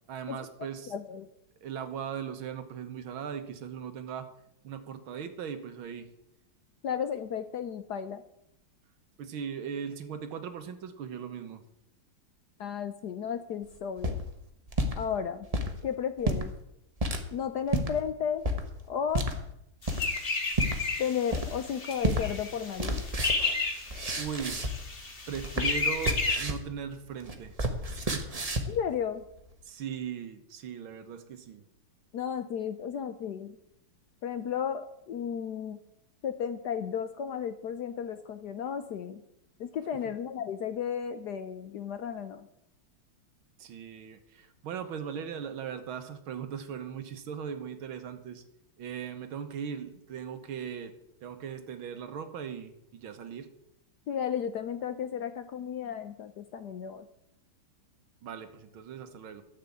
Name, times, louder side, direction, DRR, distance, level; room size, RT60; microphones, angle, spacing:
voice 1, 0.1-0.9 1.6-4.3 4.6-6.1 9.2-11.6 24.2-24.6 25.3-27.5 28.0-28.5 29.7-31.6 43.6-48.4 48.8-50.9 51.2-53.5 58.2-59.4, right 7 dB, 70° right, 9 dB, 1.9 m, -39 dB
voice 2, 0.9-1.3 6.8-8.2 12.6-14.2 15.0-15.5 15.8-16.5 17.3-18.4 18.9-19.2 21.0-23.0 28.7-29.2 32.1-33.6 34.2-35.8 36.2-39.2 39.6-42.5 54.1-57.1, left 8 dB, 65° left, 10 dB, 1.1 m, -33 dB
sound 1, 13.7-15.0 15.4-15.7 16.2-16.4 17.0-17.2 17.7-17.9 18.4-18.6 19.1-19.3 19.9-20.2 20.5-20.8 21.3-21.7 22.0-22.2 22.5-24.9 25.2-26.7 27.0-28.8, right 1 dB, 20° right, 1.0 m, -30 dB
sound 2, 19.8-26.4, left 3 dB, 30° left, 1.6 m, -32 dB
13.0 x 6.7 x 8.4 m, 0.80 s
omnidirectional pair, 2.3 m